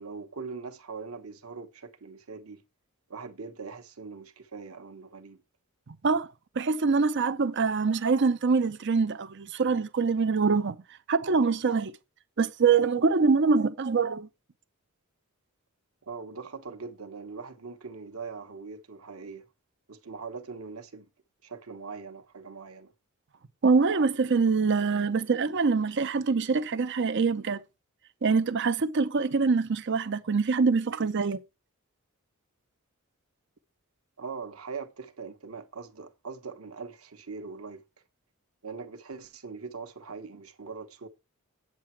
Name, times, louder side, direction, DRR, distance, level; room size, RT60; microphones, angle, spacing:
voice 1, 0.0-2.6 3.1-5.4 16.0-19.4 19.9-21.1 21.4-22.9 34.2-37.8 38.6-41.1, right 4 dB, 80° right, 1.2 m, -41 dB
voice 2, 6.6-10.8 11.1-11.9 12.4-14.3 23.6-27.6 28.2-31.4, right 4 dB, 55° right, 0.6 m, -24 dB
8.5 x 7.4 x 4.5 m
head